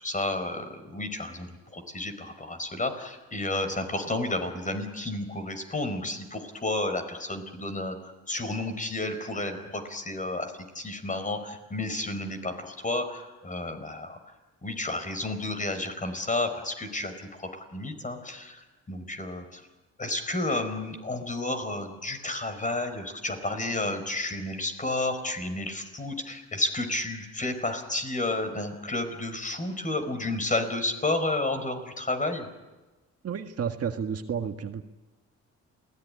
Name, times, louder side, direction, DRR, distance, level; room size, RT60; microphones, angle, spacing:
voice 1, 0.0-8.0 8.3-14.2 14.6-19.6 20.0-32.5, left 2 dB, 25° left, 7 dB, 4.8 m, -31 dB
voice 2, 33.2-34.8, right 7 dB, 50° right, 6 dB, 1.8 m, -31 dB
28.0 x 18.0 x 9.9 m, 1.2 s
cardioid pair, 90°, 30 cm